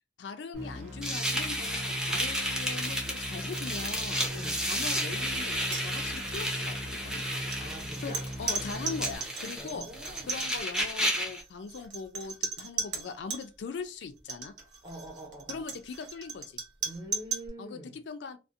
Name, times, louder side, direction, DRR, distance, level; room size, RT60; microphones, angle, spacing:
voice 1, 0.2-4.3 4.6-7.3 8.0-9.9 10.2-14.5 15.5-16.6 17.6-18.4, left 5 dB, 75° left, 0.4 m, -40 dB
sound 1, 0.5-9.2, equal, 40° right, 1.0 m, -40 dB
sound 2, 1.0-11.4, equal, 5° right, 0.6 m, -32 dB
voice 2, 4.3-4.7 7.6-8.2 9.5-10.5 14.8-15.7 16.8-18.0, right 1 dB, 25° right, 1.0 m, -44 dB
sound 3, 4.7-4.8 5.1-5.3 5.6-6.4 7.2-13.4 14.2-17.5, right 5 dB, 85° right, 0.7 m, -37 dB
2.6 x 2.0 x 2.4 m
head